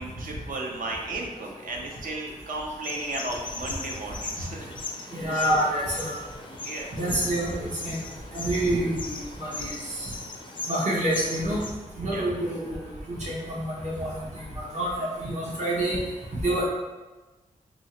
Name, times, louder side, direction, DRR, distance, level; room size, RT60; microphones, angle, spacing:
voice 1, 0.0-5.6 5.9-6.0 6.6-6.9 12.0-12.2, right 2 dB, 70° right, 0 dB, 0.6 m, -35 dB
sound 1, 2.8-11.7, left 3 dB, 35° left, 0.3 m, -38 dB
voice 2, 5.1-6.1 6.9-8.0 8.3-8.9 9.4-9.7 10.7-11.6 12.0-12.6 13.1-14.1 14.7-16.0 16.4-16.6, right 1 dB, 55° right, -5 dB, 1.0 m, -27 dB
2.8 x 2.7 x 4.3 m, 1.2 s
wide cardioid pair, 155°, 15 cm